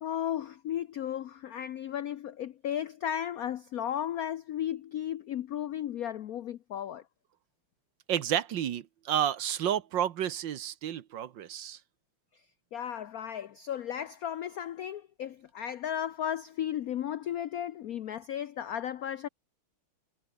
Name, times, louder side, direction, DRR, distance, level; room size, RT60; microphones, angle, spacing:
voice 1, 0.0-7.0 12.7-19.3, left 10 dB, 75° left, 0.8 m, -35 dB
voice 2, 8.1-11.8, right 10 dB, 65° right, 1.6 m, -31 dB
omnidirectional pair, 2.3 m